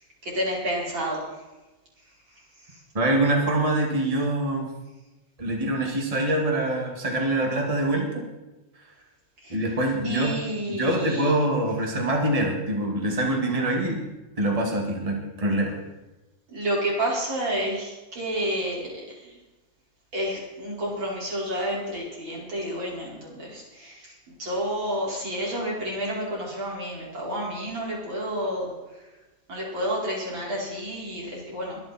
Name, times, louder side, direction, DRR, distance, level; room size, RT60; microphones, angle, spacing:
voice 1, 0.0-1.4 2.6-2.8 9.4-9.7 10.0-11.3 16.5-19.4 20.1-29.1 29.5-31.8, equal, 25° right, -4 dB, 5.5 m, -30 dB
voice 2, 2.9-4.7 5.4-8.2 9.5-10.3 10.7-14.0 14.4-15.7, right 1 dB, 55° right, 1 dB, 0.4 m, -24 dB
23.0 x 9.7 x 4.4 m, 1.1 s
omnidirectional pair, 5.0 m